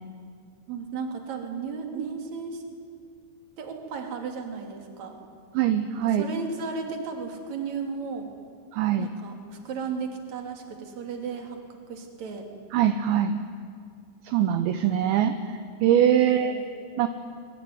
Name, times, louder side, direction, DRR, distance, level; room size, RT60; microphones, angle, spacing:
voice 1, 0.7-2.6 3.6-5.2 6.2-8.3 9.0-9.3 9.6-11.6 11.9-12.5 16.2-16.7, right 5 dB, 40° right, 3 dB, 3.5 m, -34 dB
voice 2, 5.5-6.2 8.7-9.1 12.7-13.4 14.2-16.6 17.0-17.1, right 10 dB, 75° right, 9 dB, 2.9 m, -23 dB
25.0 x 23.0 x 9.6 m, 2.2 s
omnidirectional pair, 5.9 m